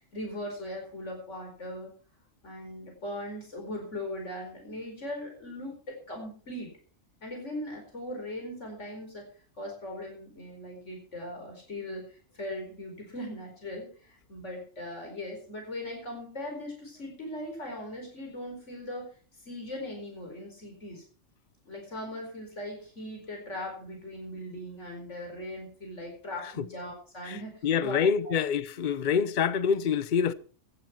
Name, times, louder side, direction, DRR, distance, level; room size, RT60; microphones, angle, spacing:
voice 1, 0.1-1.9 2.4-6.7 7.2-9.3 9.6-19.1 19.4-21.0 21.6-28.0, left 1 dB, 65° left, 4.9 m, -39 dB
voice 2, 27.6-30.3, left 7 dB, 45° left, 0.8 m, -26 dB
16.0 x 12.0 x 4.5 m
omnidirectional pair, 1.3 m